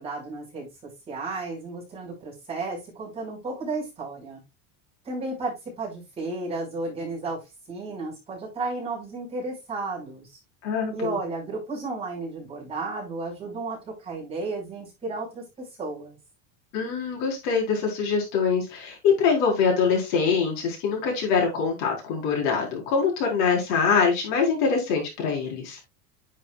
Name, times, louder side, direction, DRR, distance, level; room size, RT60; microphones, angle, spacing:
voice 1, 0.0-4.4 5.0-7.4 7.7-10.4 10.9-16.2, right 3 dB, 15° right, -5 dB, 5.6 m, -33 dB
voice 2, 10.6-11.2 16.7-25.8, left 5 dB, 60° left, 0 dB, 4.5 m, -24 dB
10.5 x 6.6 x 2.4 m, 0.23 s
cardioid pair, 175°, 37 cm